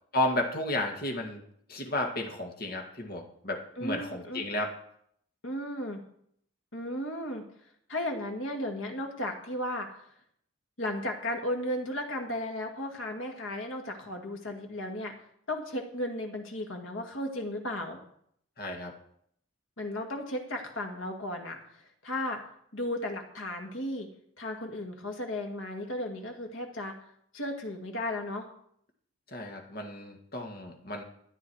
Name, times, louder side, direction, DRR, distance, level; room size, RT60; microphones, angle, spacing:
voice 1, 0.1-1.4 1.7-4.7 18.6-18.9 29.3-31.0, left 1 dB, 45° left, 2 dB, 1.9 m, -33 dB
voice 2, 3.8-4.4 5.4-6.0 6.7-7.4 7.9-10.0 10.8-15.1 15.5-18.0 19.8-22.4 22.7-24.1 24.4-27.0 27.3-28.5, left 1 dB, 65° left, 2 dB, 2.0 m, -35 dB
13.0 x 9.6 x 4.7 m, 0.69 s
head